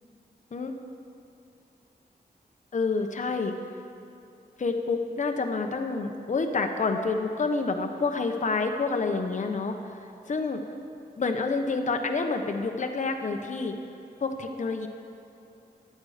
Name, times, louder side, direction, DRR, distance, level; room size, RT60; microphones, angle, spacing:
voice 1, 2.7-3.5 4.6-9.8 10.3-10.6 11.2-13.8 14.2-14.9, left 4 dB, 50° left, 5 dB, 1.0 m, -28 dB
15.0 x 11.0 x 5.0 m, 2.6 s
wide cardioid pair, 135°, 17 cm